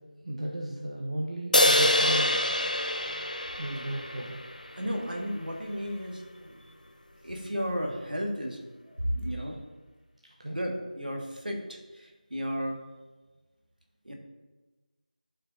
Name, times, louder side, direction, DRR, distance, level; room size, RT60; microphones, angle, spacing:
voice 1, 0.2-2.3 3.6-4.4 10.4-10.6, right 1 dB, 50° right, -2 dB, 0.9 m, -34 dB
sound 1, 1.5-5.0, left 1 dB, 65° left, 0.8 m, -26 dB
voice 2, 4.8-6.6 7.2-8.6 8.8-9.6 10.5-12.8 14.0-14.1, equal, 75° right, 1 dB, 1.6 m, -33 dB
12.5 x 4.7 x 2.6 m, 1.2 s
figure-of-eight pair, 165°, 5 cm